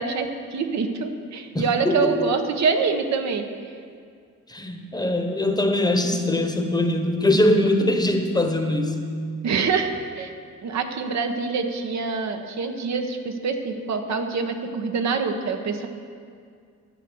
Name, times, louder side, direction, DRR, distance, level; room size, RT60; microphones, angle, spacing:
voice 1, 0.0-3.5 9.4-10.3 10.6-15.9, right 5 dB, 65° right, 5 dB, 1.1 m, -25 dB
voice 2, 1.5-2.3 4.5-9.1, left 1 dB, 15° left, 5 dB, 1.1 m, -22 dB
12.0 x 7.7 x 7.0 m, 2.2 s
cardioid pair, 90°, 30 cm